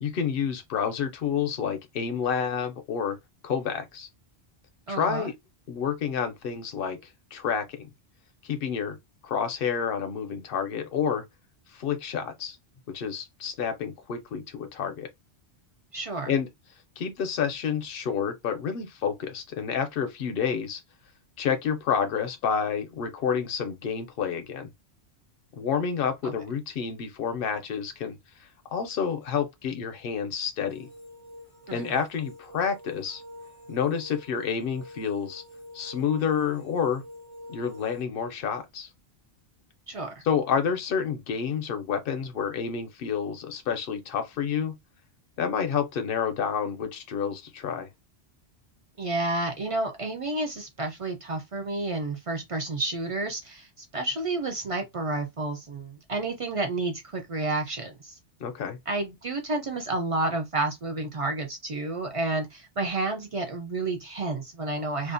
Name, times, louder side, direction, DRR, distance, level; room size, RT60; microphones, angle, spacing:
voice 1, 0.0-3.2 3.4-4.1 4.9-5.4 5.7-7.0 7.3-7.9 8.4-9.0 9.2-11.2 11.7-12.6 12.9-15.1 16.3-16.5 17.0-20.8 21.4-24.7 25.6-30.9 31.7-33.2 33.7-35.4 35.7-37.0 37.5-38.9 40.2-44.8 45.4-47.9 58.4-58.8, left 7 dB, 60° left, 0.7 m, -29 dB
voice 2, 4.9-5.3 15.9-16.3 26.2-26.3 31.7-31.9 39.9-40.2 49.0-53.7 53.9-58.1 58.9-65.1, right 2 dB, 50° right, 0.4 m, -30 dB
sound 1, 30.7-38.0, left 1 dB, 30° left, 0.5 m, -47 dB
2.5 x 2.0 x 2.5 m
omnidirectional pair, 1.1 m